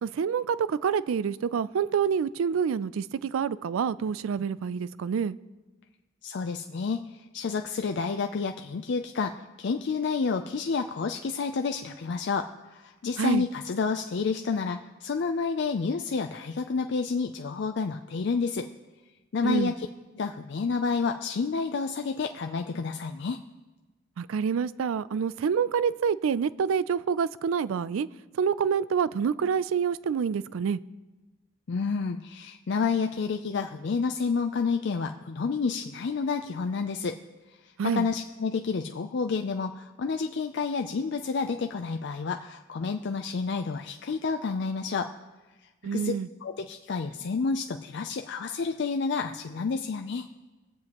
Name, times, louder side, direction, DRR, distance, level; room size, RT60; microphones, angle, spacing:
voice 1, 0.0-5.4 13.2-13.5 19.4-19.7 24.2-28.1 28.3-30.8 37.8-38.1 45.8-46.3, right 7 dB, 85° right, 0.4 m, -27 dB
voice 2, 6.2-18.7 19.3-19.9 20.1-23.4 31.7-37.2 37.5-45.1 45.9-46.1 46.4-50.3, left 5 dB, 60° left, 0.4 m, -30 dB
23.0 x 7.7 x 3.0 m
head